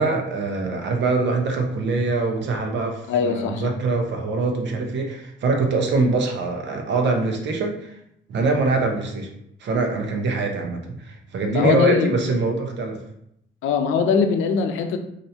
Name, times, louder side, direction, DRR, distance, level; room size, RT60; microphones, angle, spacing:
voice 1, 0.0-8.0 8.3-9.3 9.6-13.0, right 3 dB, 65° right, 3 dB, 0.8 m, -23 dB
voice 2, 3.1-3.6 11.5-12.1 13.6-15.0, left 6 dB, 85° left, 6 dB, 0.5 m, -21 dB
2.7 x 2.6 x 4.3 m, 0.77 s
cardioid pair, 90°, 20 cm